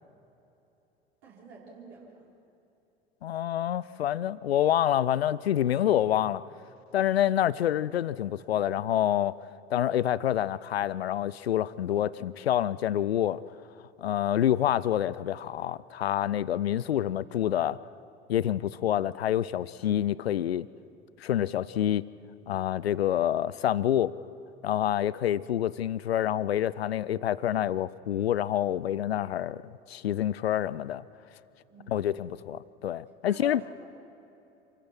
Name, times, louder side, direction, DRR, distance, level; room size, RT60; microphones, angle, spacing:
voice 1, 1.2-2.3 31.7-32.1 33.3-33.6, right 6 dB, 55° right, 4.8 m, -47 dB
voice 2, 3.2-6.4 6.9-9.4 9.7-13.4 14.0-17.8 18.3-20.7 21.2-22.0 22.5-24.1 24.6-31.0 31.9-33.6, left 11 dB, 80° left, 0.5 m, -27 dB
27.5 x 16.0 x 6.1 m
figure-of-eight pair, 70°, 31 cm